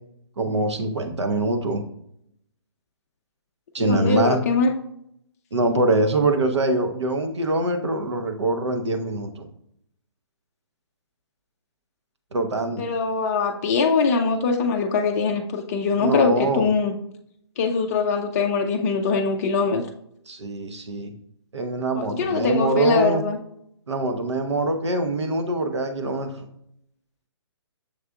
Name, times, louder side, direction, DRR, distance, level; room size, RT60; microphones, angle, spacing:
voice 1, 0.4-1.8 3.7-4.4 5.5-9.5 12.3-12.9 16.0-16.7 20.3-21.1 21.5-23.2 23.9-26.5, right 2 dB, 75° right, 6 dB, 0.8 m, -24 dB
voice 2, 3.8-4.7 12.8-17.0 17.6-19.8 21.9-23.4, left 4 dB, 35° left, 2 dB, 0.4 m, -22 dB
6.5 x 3.3 x 2.3 m, 0.74 s
figure-of-eight pair, 140°, 15 cm